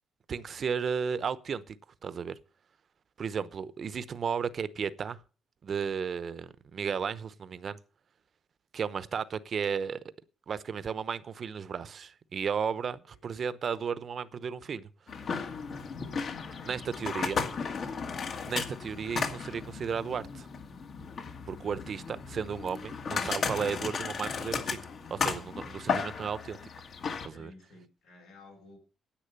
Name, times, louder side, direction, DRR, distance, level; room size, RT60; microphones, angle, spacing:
voice 1, 0.3-1.8 2.0-2.4 3.2-5.2 5.6-7.8 8.7-10.0 10.5-14.9 16.6-17.4 18.4-20.5 21.5-24.8 25.1-26.6 27.4-27.5, right 6 dB, 50° right, 0.8 m, -34 dB
sound 1, 15.1-27.3, left 5 dB, 55° left, 1.7 m, -35 dB
voice 2, 27.3-28.8, left 2 dB, 90° left, 7.2 m, -53 dB
10.0 x 8.2 x 6.7 m
cardioid pair, 90°, 0 cm